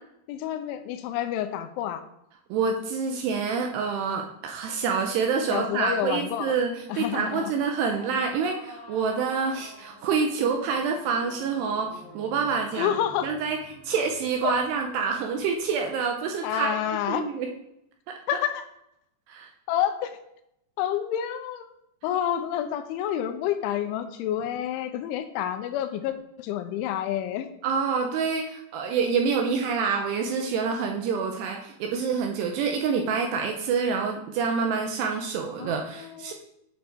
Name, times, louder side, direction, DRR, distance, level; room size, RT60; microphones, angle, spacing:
voice 1, 0.3-2.0 5.5-6.6 6.9-7.5 12.7-13.3 14.4-14.5 16.4-17.3 18.3-18.6 19.7-20.2 20.8-21.7 22.0-27.5 35.6-36.3, left 10 dB, 85° left, 8 dB, 3.1 m, -29 dB
voice 2, 2.5-11.9 12.1-12.9 13.2-13.6 13.9-16.8 17.1-17.5 19.3-19.5 27.6-36.3, right 5 dB, 85° right, 2 dB, 2.5 m, -27 dB
sound 1, 6.7-16.1, left 3 dB, 65° left, 3.7 m, -49 dB
9.0 x 5.3 x 4.5 m, 0.80 s
omnidirectional pair, 5.4 m